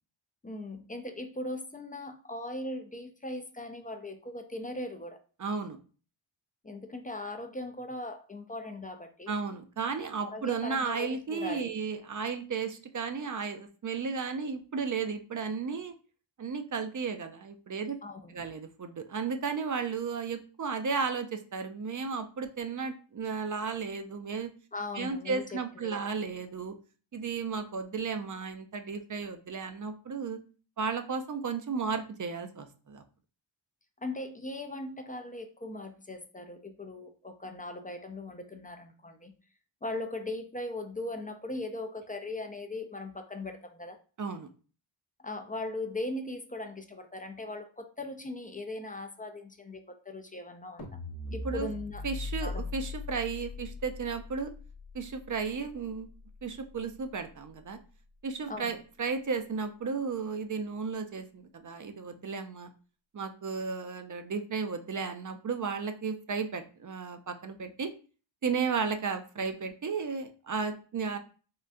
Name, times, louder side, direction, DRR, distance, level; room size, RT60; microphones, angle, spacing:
voice 1, 0.4-5.2 6.6-9.3 10.2-11.7 18.0-18.3 24.7-26.1 34.0-39.3 39.8-44.0 45.2-50.9 51.3-52.1 52.4-52.7 58.5-58.7, left 2 dB, 20° left, 6 dB, 0.4 m, -39 dB
voice 2, 5.4-5.8 9.3-15.9 16.4-18.0 18.3-24.5 25.0-26.7 27.1-30.4 30.8-33.0 44.2-44.5 51.4-51.7 52.0-54.5 54.9-56.1 56.4-57.8 58.2-62.7 63.1-67.9 68.4-71.2, right 5 dB, 40° right, 8 dB, 0.5 m, -34 dB
sound 1, 50.8-57.1, left 3 dB, 55° left, 0.7 m, -40 dB
3.6 x 2.2 x 2.5 m, 0.38 s
cardioid pair, 45°, 47 cm